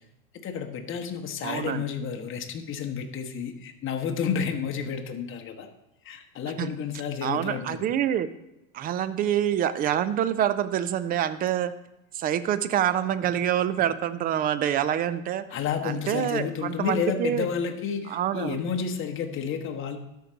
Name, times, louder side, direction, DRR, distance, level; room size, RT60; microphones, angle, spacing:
voice 1, 0.4-5.7 6.0-7.9 15.5-20.0, left 7 dB, 30° left, 4 dB, 1.1 m, -31 dB
voice 2, 1.4-1.8 6.4-6.7 7.2-8.3 8.7-11.7 12.1-15.4 15.8-17.5 18.1-18.6, right 10 dB, 25° right, 14 dB, 0.4 m, -26 dB
12.5 x 4.7 x 3.9 m, 0.91 s
hypercardioid pair, 100°, 42 cm